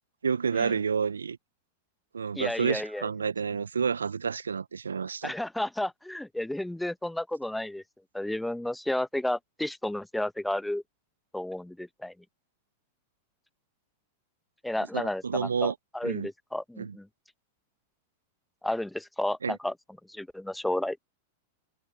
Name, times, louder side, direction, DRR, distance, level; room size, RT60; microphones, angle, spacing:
voice 1, 0.2-1.4 2.1-5.3 14.9-15.7 16.0-16.3 16.8-17.0 19.4-19.6, right 6 dB, 75° right, 1.0 m, -29 dB
voice 2, 2.4-3.1 5.2-7.8 8.1-10.8 11.3-12.1 14.6-17.1 18.6-19.7 20.1-21.0, left 1 dB, 5° left, 1.3 m, -32 dB
figure-of-eight pair, 95°, 0 cm